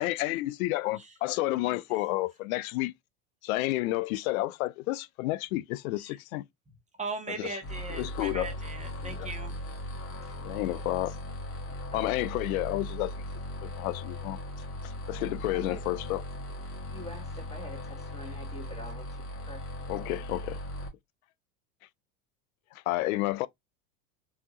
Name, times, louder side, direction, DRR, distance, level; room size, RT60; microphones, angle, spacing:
voice 1, 0.0-2.9 3.4-6.4 7.4-7.6 7.9-8.6 9.0-9.3 10.4-11.2 11.9-13.1 13.6-14.4 14.8-16.2 19.9-20.6 22.7-23.5, left 18 dB, 65° left, 0.5 m, -31 dB
voice 2, 7.0-9.6, right 3 dB, 15° right, 1.0 m, -39 dB
sound 1, 7.6-20.9, left 1 dB, 30° left, 1.4 m, -38 dB
voice 3, 11.9-12.2 15.5-15.8 16.9-19.7, equal, 15° left, 1.9 m, -46 dB
3.4 x 2.8 x 2.6 m
hypercardioid pair, 95°, 46 cm